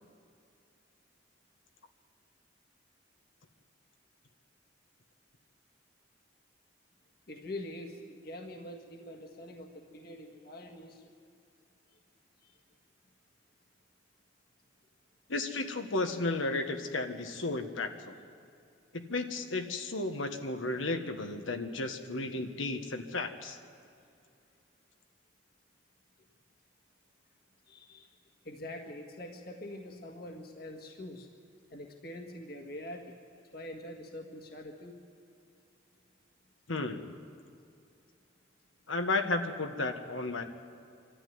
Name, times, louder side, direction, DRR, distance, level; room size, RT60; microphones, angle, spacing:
voice 1, 7.3-11.0 12.4-12.5 27.7-28.1 28.4-31.3 31.7-35.0, left 1 dB, 50° left, 2 dB, 1.8 m, -44 dB
voice 2, 15.3-18.1 18.9-23.6 36.7-37.1 38.9-40.4, left 2 dB, 90° left, 6 dB, 1.6 m, -33 dB
24.5 x 13.5 x 9.5 m, 2.5 s
head